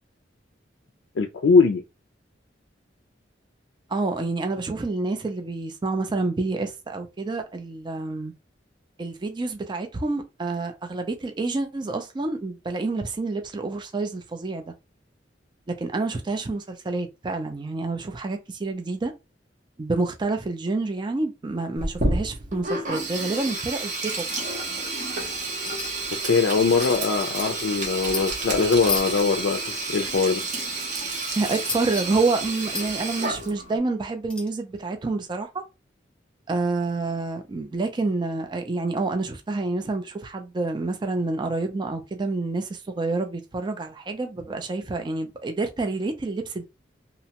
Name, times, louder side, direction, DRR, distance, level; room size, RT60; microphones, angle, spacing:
voice 1, 1.2-1.8 26.2-29.6 29.9-30.4, left 4 dB, 70° left, 0.4 m, -21 dB
voice 2, 3.9-8.3 9.0-14.6 15.7-19.1 19.8-24.3 31.4-35.6 36.5-46.6, right 3 dB, 25° right, 0.4 m, -28 dB
Sink (filling or washing), 21.8-33.8, right 2 dB, 45° right, 0.7 m, -30 dB
sound 1, 25.6-25.9 26.2-26.3 26.5-27.5 27.8-28.2 28.8-29.2 31.3-32.0 32.7-32.8 34.3-34.5, left 4 dB, 5° left, 0.7 m, -32 dB
2.8 x 2.1 x 2.8 m
head